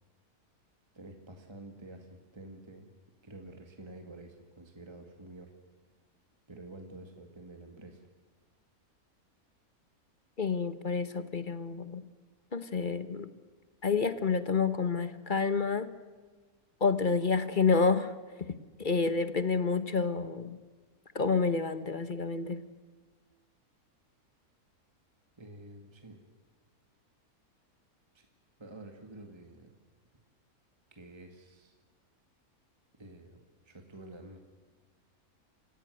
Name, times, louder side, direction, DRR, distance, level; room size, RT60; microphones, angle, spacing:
voice 1, 0.9-2.9 3.2-5.5 6.5-8.1 25.4-26.2 28.1-28.3 28.6-29.8 30.9-31.8 33.0-33.4 33.6-34.4, right 2 dB, 20° right, 5 dB, 2.0 m, -49 dB
voice 2, 10.4-12.0 12.5-13.3 13.8-15.9 16.8-18.1 18.8-20.6 21.1-22.6, left 4 dB, 35° left, 13 dB, 1.2 m, -29 dB
28.0 x 16.5 x 8.0 m, 1.4 s
omnidirectional pair, 1.6 m